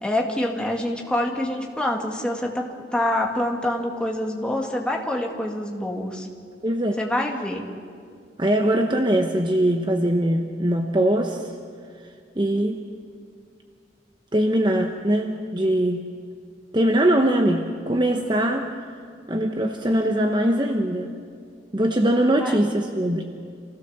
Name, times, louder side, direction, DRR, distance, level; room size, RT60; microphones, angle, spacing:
voice 1, 0.0-2.7 2.9-6.3 7.0-7.7 22.4-22.6, left 1 dB, 5° left, 0 dB, 2.0 m, -26 dB
voice 2, 6.6-7.0 8.4-11.5 12.4-12.8 14.3-16.0 16.7-18.7 19.3-21.1 21.7-23.2, right 1 dB, 25° right, 4 dB, 1.0 m, -21 dB
27.0 x 16.5 x 7.3 m, 2.2 s
head